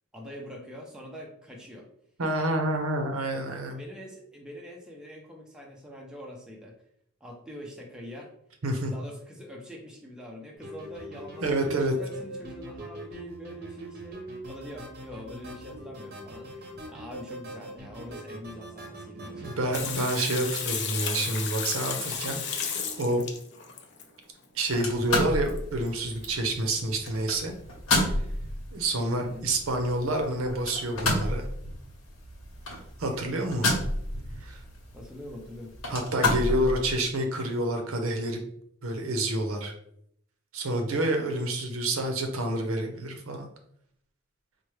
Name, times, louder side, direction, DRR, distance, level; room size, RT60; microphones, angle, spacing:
voice 1, 0.1-1.9 3.5-6.7 7.2-8.3 8.9-14.2 14.5-19.6 29.2-29.5 34.9-35.7, equal, 5° right, -1 dB, 0.5 m, -44 dB
voice 2, 2.2-3.8 8.6-8.9 11.4-11.9 19.3-22.7 23.0-23.3 24.5-27.5 28.0-28.1 28.7-31.5 33.0-33.7 34.4-34.6 35.9-38.4 38.8-39.7 40.5-43.5, right 1 dB, 80° right, 4 dB, 0.7 m, -28 dB
sound 1, 10.6-19.9, right 1 dB, 45° right, 0.7 m, -42 dB
Water tap faucet / Sink (filling or washing), 19.7-24.0 25.5-25.6 25.9-26.0 26.2-26.3, left 6 dB, 55° left, 0.5 m, -33 dB
sound 2, 24.7-37.0, left 2 dB, 85° left, 1.0 m, -31 dB
4.3 x 2.2 x 3.1 m, 0.70 s
head